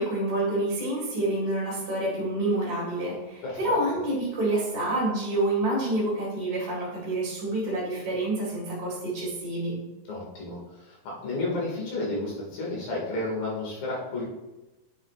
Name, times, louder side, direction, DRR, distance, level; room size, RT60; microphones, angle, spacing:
voice 1, 0.0-9.8, right 1 dB, 35° right, -6 dB, 1.6 m, -28 dB
voice 2, 3.4-3.8 10.1-14.2, left 2 dB, 65° left, -4 dB, 3.8 m, -32 dB
8.9 x 7.2 x 2.5 m, 1.0 s
omnidirectional pair, 4.5 m